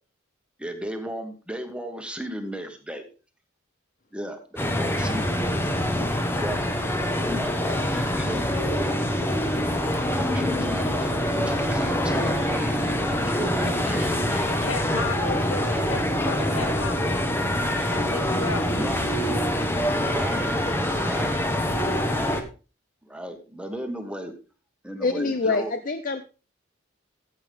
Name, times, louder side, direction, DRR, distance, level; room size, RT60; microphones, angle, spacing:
voice 1, 0.6-3.0 4.1-6.7 7.2-8.4 10.0-14.6 15.7-15.8 18.7-19.1 20.0-20.5 21.0-21.4 22.1-22.4 23.0-24.3 24.8-25.7, right 1 dB, 5° right, 5 dB, 1.4 m, -35 dB
sound 1, 4.6-22.4, left 1 dB, 10° left, 1.1 m, -25 dB
voice 2, 14.5-17.3 17.8-19.0, left 4 dB, 70° left, 9 dB, 1.3 m, -34 dB
voice 3, 21.9-22.2 25.0-26.2, left 3 dB, 45° left, 9 dB, 0.6 m, -26 dB
14.5 x 8.3 x 3.5 m, 0.34 s
head